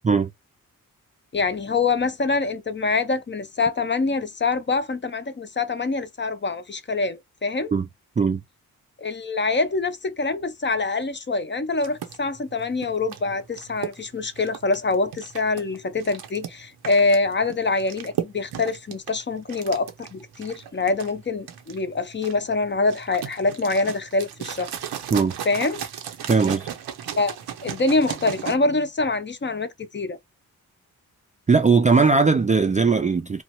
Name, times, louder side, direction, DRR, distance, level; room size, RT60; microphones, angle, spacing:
voice 1, 1.3-7.7 9.0-24.7 25.5-25.8 27.2-27.4 27.6-30.2, left 3 dB, 30° left, 0.5 m, -25 dB
sound 1, 11.8-28.6, right 9 dB, 90° right, 0.7 m, -36 dB
voice 2, 26.3-26.7 31.5-33.4, right 4 dB, 20° right, 0.3 m, -19 dB
2.9 x 2.1 x 2.9 m
cardioid pair, 50°, 37 cm